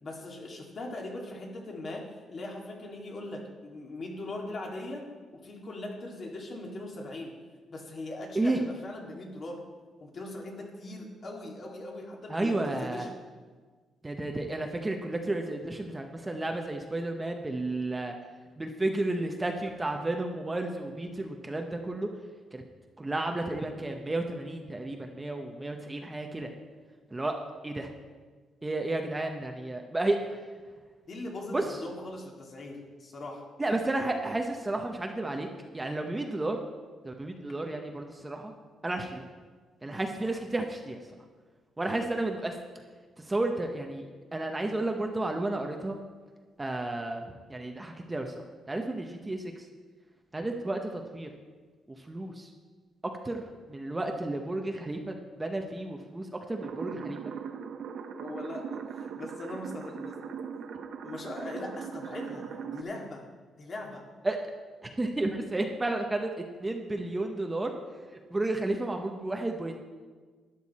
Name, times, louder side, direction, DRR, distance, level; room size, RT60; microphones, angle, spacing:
voice 1, 0.0-7.4 7.7-9.6 10.0-13.2 31.1-33.5 56.9-57.0 58.2-60.2 61.0-63.3 63.6-64.0, left 2 dB, 45° left, 0 dB, 2.2 m, -40 dB
voice 2, 12.3-13.1 14.0-18.2 18.6-22.1 22.5-22.6 23.0-26.5 27.1-27.3 27.6-27.9 28.6-30.4 31.5-31.8 33.6-35.5 35.7-36.6 37.0-38.5 38.8-39.3 39.8-41.0 41.8-42.6 43.2-44.0 44.3-46.0 46.6-49.7 50.3-51.3 51.9-52.5 53.2-57.2 64.2-64.4 64.8-66.3 66.6-67.7 68.1-69.8, right 2 dB, 15° right, 3 dB, 0.9 m, -32 dB
sound 1, 56.6-62.8, right 6 dB, 65° right, 0.8 m, -39 dB
12.0 x 10.5 x 4.2 m, 1.4 s
cardioid pair, 125°, 0 cm